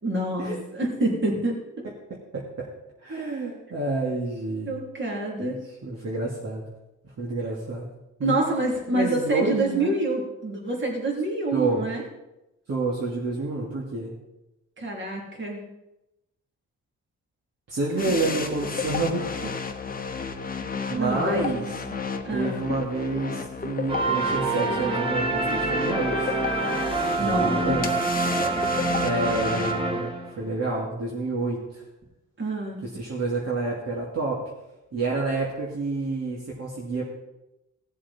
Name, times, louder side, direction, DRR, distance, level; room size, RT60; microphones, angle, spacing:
voice 1, 0.0-1.6 4.7-5.6 8.2-12.0 14.8-15.6 18.0-18.2 20.9-22.6 27.2-27.9 28.4-28.6 32.4-32.8, right 2 dB, 40° right, -2 dB, 3.5 m, -27 dB
voice 2, 2.1-2.7 3.0-4.7 5.4-5.5 5.8-6.7 7.0-7.9 8.2-8.4 8.9-10.0 11.5-11.9 12.7-14.1 17.7-19.6 20.9-21.6 22.3-26.3 27.2-27.9 29.0-31.8 32.8-34.5 34.9-37.0, right 3 dB, 60° right, -4 dB, 2.4 m, -29 dB
sound 1, 18.0-29.8, left 5 dB, 30° left, 1.0 m, -33 dB
sound 2, 23.9-30.5, right 3 dB, 20° right, 2.3 m, -26 dB
17.0 x 7.5 x 4.4 m, 0.94 s
cardioid pair, 105°, 29 cm